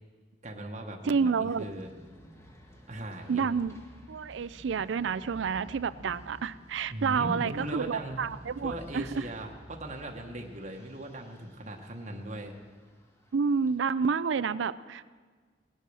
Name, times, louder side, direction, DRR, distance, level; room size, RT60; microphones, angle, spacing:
voice 1, 0.4-1.9 2.9-3.5 6.9-8.2 8.6-12.5, right 1 dB, 40° right, 2 dB, 1.1 m, -39 dB
voice 2, 1.0-1.6 3.3-3.8 4.1-9.3 13.3-15.1, right 5 dB, 90° right, 17 dB, 0.4 m, -29 dB
sound 1, 1.6-13.8, equal, 15° left, 1.3 m, -52 dB
18.0 x 8.4 x 6.2 m, 1.5 s
head